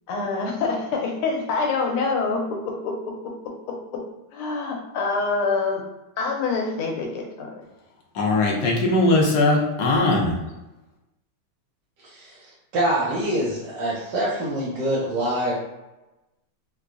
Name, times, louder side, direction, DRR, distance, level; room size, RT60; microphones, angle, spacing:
voice 1, 0.1-3.3 3.7-4.0 4.3-5.8 6.2-7.6, left 4 dB, 90° left, 1 dB, 1.5 m, -26 dB
voice 2, 8.2-10.3, left 2 dB, 65° left, -1 dB, 1.1 m, -20 dB
voice 3, 12.0-15.5, right 1 dB, 65° right, -7 dB, 1.2 m, -25 dB
4.4 x 2.2 x 2.5 m, 1.0 s
omnidirectional pair, 2.4 m